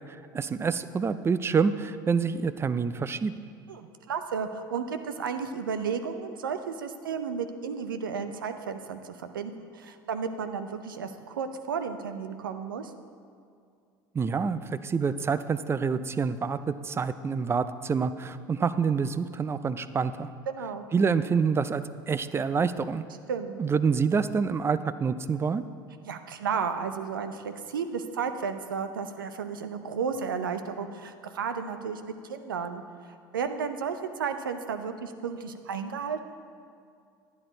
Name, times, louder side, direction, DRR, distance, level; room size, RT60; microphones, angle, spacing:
voice 1, 0.0-3.3 14.1-20.3 20.9-23.0 23.6-25.6, right 5 dB, 25° right, 13 dB, 0.5 m, -27 dB
voice 2, 3.7-12.9 20.5-20.8 23.3-23.6 26.0-36.2, right 6 dB, 85° right, 8 dB, 0.7 m, -33 dB
10.5 x 10.5 x 3.9 m, 2.4 s
hypercardioid pair, 70°, 11 cm